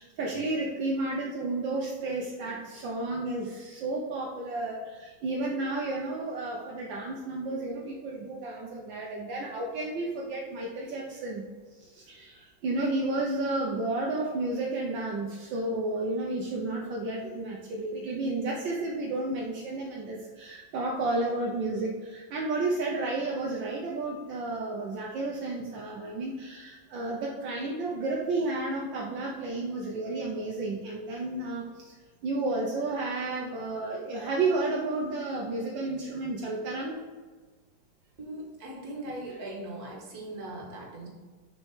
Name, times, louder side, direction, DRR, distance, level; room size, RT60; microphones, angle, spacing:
voice 1, 0.0-11.4 11.7-32.0 32.2-37.0, right 2 dB, 75° right, -2 dB, 1.6 m, -32 dB
voice 2, 38.2-41.1, right 1 dB, 50° right, -2 dB, 2.1 m, -39 dB
6.4 x 5.6 x 4.8 m, 1.4 s
omnidirectional pair, 2.1 m